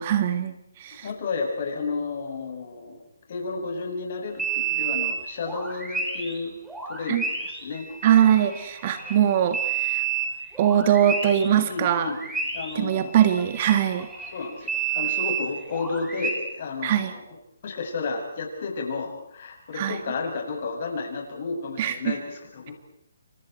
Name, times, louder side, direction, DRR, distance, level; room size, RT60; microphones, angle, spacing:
voice 1, 0.0-1.1 7.1-7.2 8.0-10.0 10.6-12.1 12.7-14.1 16.8-17.1 19.7-20.0 21.8-22.2, right 10 dB, 35° right, 9 dB, 1.7 m, -22 dB
voice 2, 1.0-3.0 3.3-6.6 6.9-7.9 11.7-12.2 12.5-13.2 14.3-14.7 14.9-17.2 17.6-22.7, left 4 dB, 50° left, 1 dB, 7.4 m, -32 dB
sound 1, 4.4-6.4 6.7-11.5 11.8-16.3, right 7 dB, 5° right, 4.0 m, -30 dB
28.5 x 25.5 x 4.6 m, 0.77 s
hypercardioid pair, 155°, 0 cm